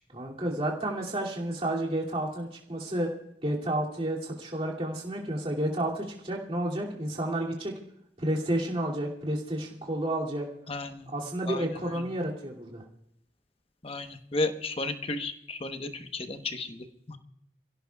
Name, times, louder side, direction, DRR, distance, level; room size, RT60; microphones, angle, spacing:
voice 1, 0.1-3.1 3.4-7.7 8.2-10.5 11.1-12.8, right 1 dB, 35° right, -3 dB, 2.6 m, -31 dB
voice 2, 10.7-11.1 11.5-11.6 13.8-16.8 17.1-17.2, left 2 dB, 30° left, 7 dB, 1.0 m, -33 dB
27.5 x 16.5 x 2.3 m, 0.75 s
head